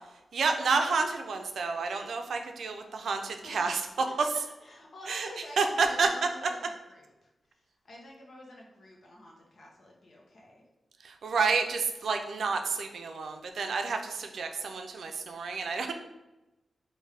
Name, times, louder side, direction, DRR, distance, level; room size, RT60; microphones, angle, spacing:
voice 1, 0.3-4.1 5.1-5.3 5.6-6.1 11.0-15.9, right 4 dB, 85° right, 5 dB, 0.4 m, -29 dB
voice 2, 3.4-3.8 4.1-4.3 4.6-7.3 7.8-10.6, left 1 dB, 60° left, -2 dB, 1.0 m, -48 dB
4.8 x 2.6 x 3.3 m, 1.0 s
wide cardioid pair, 130°, 0 cm